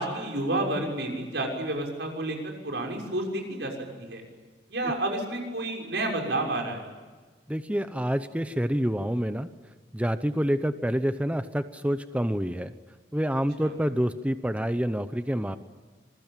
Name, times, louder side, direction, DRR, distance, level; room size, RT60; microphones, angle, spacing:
voice 1, 0.0-3.7 4.0-4.2 4.7-6.8 13.6-13.7, right 1 dB, 75° right, 2 dB, 6.4 m, -30 dB
voice 2, 7.5-9.5 9.9-12.7 13.1-15.6, equal, 10° right, 10 dB, 0.8 m, -27 dB
26.5 x 21.5 x 9.1 m, 1.4 s
head